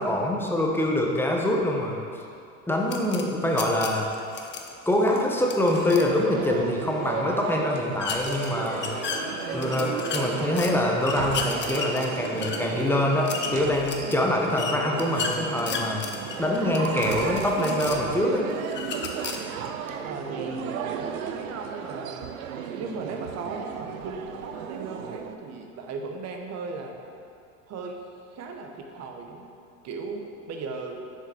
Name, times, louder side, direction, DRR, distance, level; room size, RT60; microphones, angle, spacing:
voice 1, 0.0-2.0 2.7-4.1 4.9-8.9 9.5-16.1 16.4-18.5, left 1 dB, 5° left, -1 dB, 0.9 m, -25 dB
sound 1, 2.9-6.2 8.0-10.7 11.0-18.2 18.7-19.7, left 5 dB, 25° left, 0.6 m, -35 dB
sound 2, 5.7-25.3, right 7 dB, 85° right, 0.6 m, -34 dB
sound 3, 8.2-11.0 12.1-14.7, equal, 20° right, 1.7 m, -41 dB
voice 2, 20.0-22.3 22.7-27.2 27.7-28.0 28.3-29.5 29.8-31.0, right 4 dB, 40° right, 3 dB, 0.9 m, -37 dB
6.9 x 4.8 x 4.3 m, 2.5 s
hypercardioid pair, 95°, 41 cm